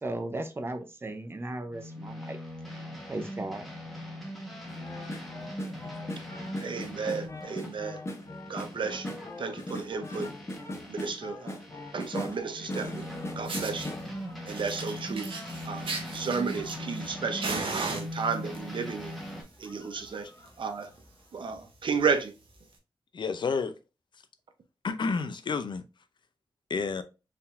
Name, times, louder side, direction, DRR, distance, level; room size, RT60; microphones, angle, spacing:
voice 1, 0.0-2.4 3.1-3.6, right 2 dB, 25° right, 0.6 m, -36 dB
sound 1, 1.7-11.2 11.6-19.4, equal, ahead, 1.2 m, -41 dB
sound 2, 4.7-15.0 15.5-17.9 18.4-18.5 18.8-19.1 19.6-20.6 20.9-21.0, left 1 dB, 30° left, 0.8 m, -41 dB
voice 2, 6.6-8.0 8.5-9.1 9.4-10.3 10.9-11.5 11.9-12.9 13.4-13.9 14.5-15.3 15.7-19.1 19.6-20.3 20.6-20.9 21.3-22.3, right 5 dB, 65° right, 0.7 m, -32 dB
Fire, 13.0-13.1 13.5-13.9 14.5-17.1 17.4-18.6 19.4-19.7 20.0-20.1 20.5-20.6 20.8-21.0 21.6-21.7 22.6-22.7, right 3 dB, 85° right, 1.1 m, -36 dB
voice 3, 23.1-23.8 24.8-25.8 26.7-27.0, left 5 dB, 60° left, 0.5 m, -30 dB
4.6 x 3.6 x 2.5 m
wide cardioid pair, 155°, 9 cm